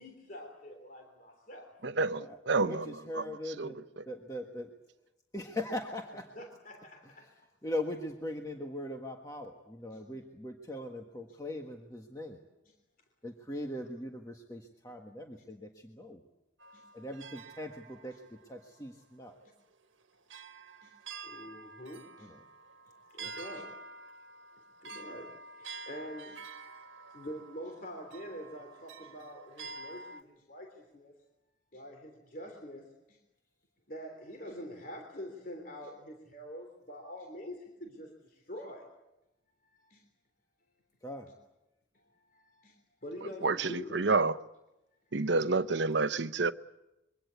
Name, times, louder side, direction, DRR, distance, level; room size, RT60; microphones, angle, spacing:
voice 1, 0.0-1.7 6.3-7.3 9.9-10.0 11.3-11.4 12.6-12.7 16.7-16.8 20.8-20.9 21.2-22.3 23.1-23.7 24.8-25.3 25.6-26.4 27.1-30.7 30.9-31.1 31.7-33.2 33.9-38.1 38.5-38.9 39.9-40.0 42.3-42.7 43.0-44.1 45.2-45.5, equal, 45° left, 3.2 m, -45 dB
voice 2, 1.8-2.9 3.2-3.3 3.6-3.7 4.0-4.1 43.4-44.4 45.1-46.5, right 3 dB, 70° right, 0.9 m, -29 dB
voice 3, 2.6-4.7 5.3-6.3 7.6-12.4 13.2-16.2 16.9-18.1 18.5-19.4 22.2-22.4 23.2-23.4 41.0-41.3, left 1 dB, 20° left, 1.5 m, -40 dB
sound 1, 16.6-18.5 19.4-19.5 20.3-30.2, right 3 dB, 90° right, 1.4 m, -48 dB
25.5 x 23.5 x 8.2 m
head